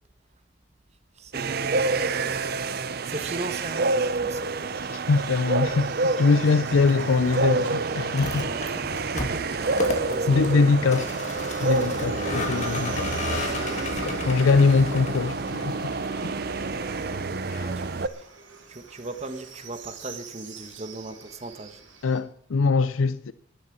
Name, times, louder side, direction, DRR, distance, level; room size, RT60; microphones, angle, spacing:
voice 1, 1.1-2.4 3.0-4.7 6.1-6.6 8.3-10.8 13.1-14.1 17.5-18.3 18.7-21.8, right 2 dB, 35° right, 1.3 m, -38 dB
sound 1, 1.3-18.1, right 3 dB, 50° right, 0.7 m, -28 dB
voice 2, 4.9-8.5 10.3-11.0 11.6-13.2 14.0-15.9 16.2-16.3 17.5-17.7 22.0-23.3, left 4 dB, 90° left, 0.5 m, -22 dB
Livestock farm animals working animals, 5.8-22.2, right 5 dB, 70° right, 3.3 m, -47 dB
Vehicle, 8.2-17.4, left 2 dB, 35° left, 2.4 m, -34 dB
11.5 x 11.0 x 7.3 m
head